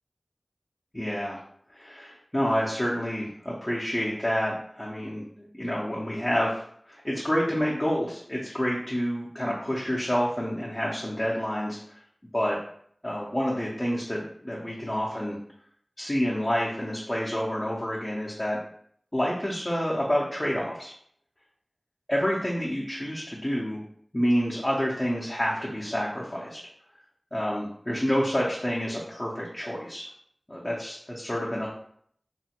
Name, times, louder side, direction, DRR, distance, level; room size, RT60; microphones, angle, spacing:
voice 1, 0.9-1.4 1.7-12.0 12.3-12.6 13.0-15.4 16.0-18.6 19.1-20.9 22.1-23.8 24.1-26.6 27.3-30.1 30.5-31.7, equal, 25° left, -5 dB, 0.5 m, -28 dB
3.0 x 2.1 x 2.8 m, 0.65 s
wide cardioid pair, 50°, 0 cm